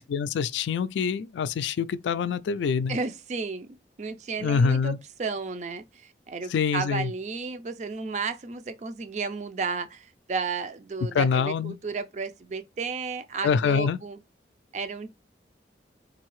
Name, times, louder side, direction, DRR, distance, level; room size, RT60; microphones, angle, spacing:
voice 1, 0.0-3.0 4.4-5.0 6.5-7.1 11.1-11.8 13.4-14.0, left 6 dB, 85° left, 0.3 m, -25 dB
voice 2, 2.9-4.9 5.2-14.2 14.7-15.1, right 4 dB, 40° right, 0.4 m, -33 dB
3.9 x 2.7 x 3.0 m
head